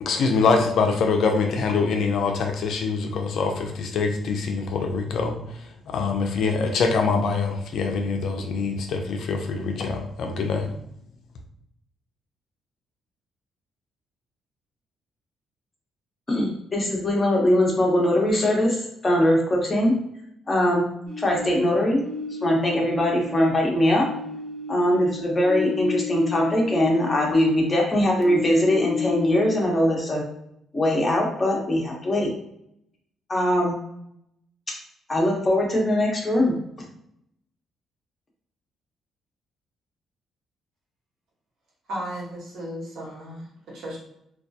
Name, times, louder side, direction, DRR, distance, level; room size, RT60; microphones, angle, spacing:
voice 1, 0.0-5.3 5.9-10.7, left 4 dB, 70° left, 4 dB, 0.4 m, -24 dB
voice 2, 16.3-19.9 20.5-20.9 21.2-22.0 22.4-24.0 24.7-30.2 30.7-32.3 33.3-33.8 35.1-36.5, left 1 dB, 25° left, -1 dB, 0.8 m, -21 dB
sound 1, 21.1-23.6 23.9-27.8 28.1-29.8, left 6 dB, 35° right, 0.8 m, -32 dB
voice 3, 41.9-44.0, equal, 75° right, -4 dB, 1.0 m, -35 dB
2.3 x 2.1 x 2.6 m, 0.76 s
cardioid pair, 90°, 0 cm